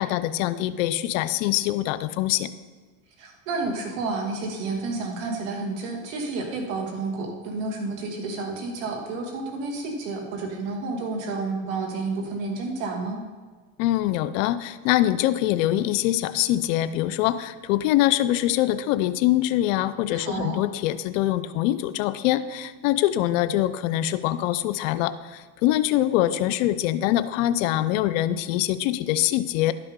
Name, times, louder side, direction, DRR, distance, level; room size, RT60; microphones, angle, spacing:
voice 1, 0.0-2.5 13.8-29.7, left 14 dB, 80° left, 14 dB, 0.6 m, -24 dB
voice 2, 3.2-13.2 20.1-20.6, right 3 dB, 80° right, 2 dB, 2.2 m, -30 dB
11.5 x 5.9 x 5.2 m, 1.4 s
supercardioid pair, 105°, 39 cm